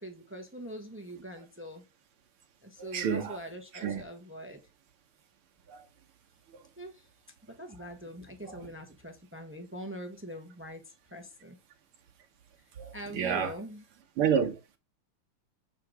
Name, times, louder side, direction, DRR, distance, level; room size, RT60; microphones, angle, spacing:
voice 1, 0.0-1.8 2.6-4.6 6.8-7.1 7.5-11.6 12.9-13.8, equal, 15° right, 0.4 m, -43 dB
voice 2, 2.9-3.4 3.8-4.0 5.7-5.8 12.8-13.5 14.2-14.5, right 7 dB, 75° right, 2.1 m, -29 dB
8.3 x 3.9 x 4.8 m
omnidirectional pair, 2.4 m